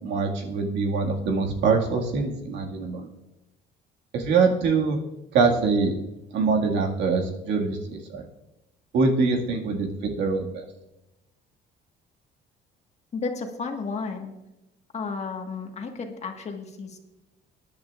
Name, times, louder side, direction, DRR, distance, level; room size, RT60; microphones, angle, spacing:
voice 1, 0.0-3.1 4.1-5.0 5.3-5.9 6.3-8.2 8.9-10.7, right 4 dB, 75° right, 1 dB, 2.0 m, -24 dB
voice 2, 13.1-14.3 14.9-17.0, left 4 dB, 35° left, 3 dB, 1.6 m, -33 dB
20.0 x 10.5 x 2.5 m, 0.95 s
cardioid pair, 130°, 19 cm